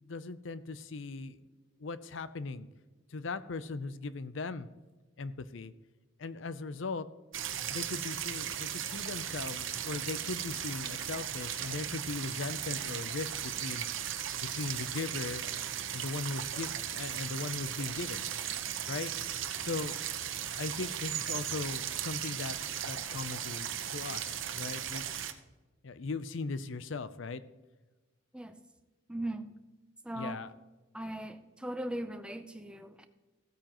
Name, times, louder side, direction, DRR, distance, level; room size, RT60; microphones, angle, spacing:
voice 1, 0.0-1.4 1.8-2.7 3.1-4.7 5.2-5.7 6.2-7.1 7.7-13.8 14.4-15.4 15.9-18.3 18.9-19.1 19.6-20.0 20.6-22.6 22.8-25.1 25.8-27.4 30.1-30.5, left 3 dB, 70° left, 14 dB, 0.6 m, -38 dB
sound 1, 7.3-25.3, right 10 dB, 70° right, 0.8 m, -37 dB
voice 2, 29.1-29.5 30.0-30.4 30.9-33.1, right 1 dB, 5° right, 8 dB, 0.6 m, -39 dB
15.5 x 8.9 x 3.0 m, 1.2 s
head